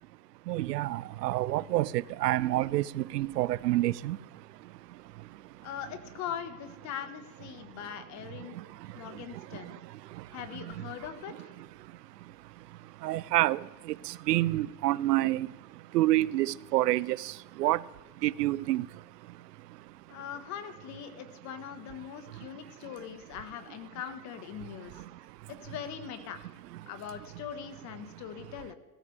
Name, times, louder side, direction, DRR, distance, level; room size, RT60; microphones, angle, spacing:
voice 1, 0.4-5.7 7.5-7.8 8.2-20.2 22.3-23.0 24.6-25.6 26.7-26.9 28.1-28.5, right 16 dB, 90° right, 0.6 m, -31 dB
voice 2, 5.6-8.6 8.9-9.8 10.3-11.5 20.1-25.0 25.6-26.4 26.9-28.7, left 9 dB, 35° left, 1.5 m, -41 dB
17.5 x 13.5 x 3.4 m
supercardioid pair, 130°, 47 cm